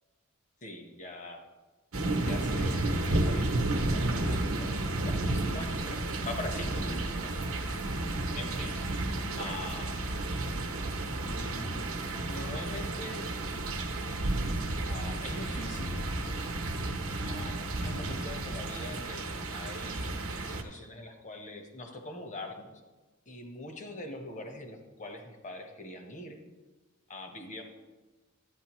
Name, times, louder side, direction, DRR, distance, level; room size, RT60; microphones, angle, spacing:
voice 1, 0.6-1.5 2.2-7.7 8.3-8.8 9.4-10.0 11.1-11.9 12.2-13.3 14.9-16.1 17.2-19.2 19.5-20.2 20.4-22.8 23.3-26.4 27.1-27.6, left 2 dB, 35° left, 4 dB, 1.1 m, -43 dB
sound 1, 1.9-20.6, right 2 dB, 70° right, 0.9 m, -32 dB
12.0 x 9.1 x 3.1 m, 1.2 s
head